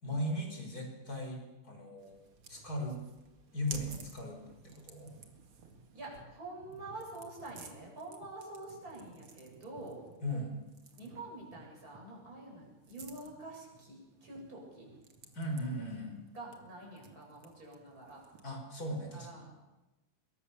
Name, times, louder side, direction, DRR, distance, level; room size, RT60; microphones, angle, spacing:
voice 1, 0.0-2.1 2.5-3.0 3.5-5.1 10.2-10.5 15.3-16.2 18.4-19.6, equal, 40° left, 3 dB, 5.8 m, -38 dB
sound 1, 2.0-18.6, right 5 dB, 75° right, 3.1 m, -54 dB
voice 2, 5.9-10.0 11.0-14.9 16.3-18.2 19.1-19.5, right 2 dB, 40° right, -3 dB, 8.4 m, -47 dB
25.5 x 22.5 x 7.1 m, 1.1 s
omnidirectional pair, 2.4 m